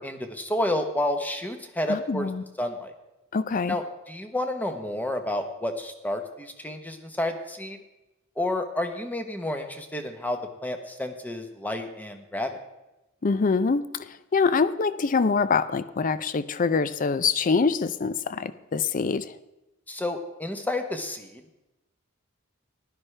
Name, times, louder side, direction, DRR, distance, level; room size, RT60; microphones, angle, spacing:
voice 1, 0.0-2.3 2.6-2.9 3.7-7.8 8.4-12.5 19.9-21.4, left 1 dB, 10° left, 6 dB, 0.9 m, -30 dB
voice 2, 1.9-2.4 3.3-3.8 13.2-13.8 14.3-19.3, left 4 dB, 40° left, 15 dB, 0.4 m, -24 dB
15.5 x 11.5 x 3.3 m, 0.99 s
head